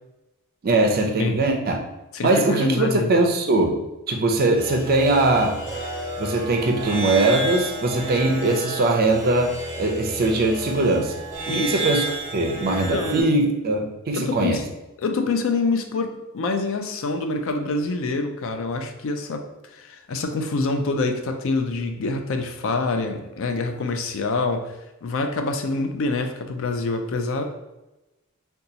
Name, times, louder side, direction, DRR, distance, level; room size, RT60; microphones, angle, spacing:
voice 1, 0.6-1.8 2.2-3.8 4.1-5.6 6.2-11.1 11.5-12.0 12.3-14.6, right 2 dB, 45° right, 3 dB, 0.4 m, -21 dB
voice 2, 2.1-3.1 11.5-11.8 12.9-13.3 14.1-14.6 15.0-24.7 25.0-27.4, left 3 dB, 60° left, 5 dB, 0.4 m, -26 dB
sound 1, 4.5-13.2, right 1 dB, 15° right, 0.9 m, -31 dB
2.8 x 2.3 x 3.8 m, 1.0 s
head